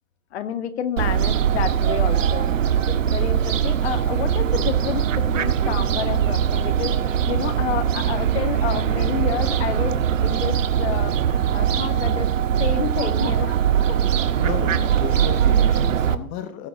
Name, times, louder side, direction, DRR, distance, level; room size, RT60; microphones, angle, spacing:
voice 1, 0.3-2.5 2.9-12.3 12.6-14.0, left 9 dB, 50° left, 10 dB, 2.3 m, -30 dB
Fowl, 1.0-16.2, right 9 dB, 65° right, 1.6 m, -21 dB
voice 2, 14.4-16.7, left 10 dB, 20° left, 9 dB, 1.0 m, -33 dB
17.5 x 7.6 x 7.5 m, 0.38 s
hypercardioid pair, 155°, 41 cm